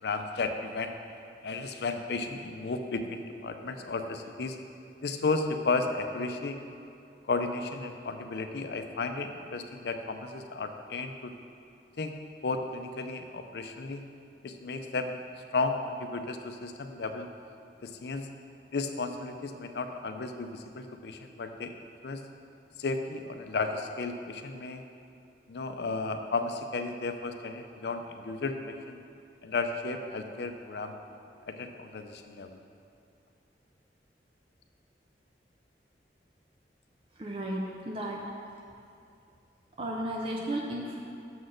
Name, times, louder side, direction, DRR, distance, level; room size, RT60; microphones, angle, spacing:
voice 1, 0.0-0.9 1.4-4.6 5.0-6.6 7.3-11.3 12.0-12.2 12.4-14.0 14.4-15.2 15.5-17.3 17.8-18.3 18.7-21.7 22.0-22.2 22.8-24.8 25.5-29.0 29.4-30.9 31.5-32.6, left 3 dB, 70° left, 6 dB, 0.5 m, -33 dB
voice 2, 37.2-38.3 38.5-38.6 39.8-41.0, right 1 dB, 30° right, -2 dB, 0.5 m, -34 dB
6.8 x 4.2 x 6.3 m, 2.6 s
head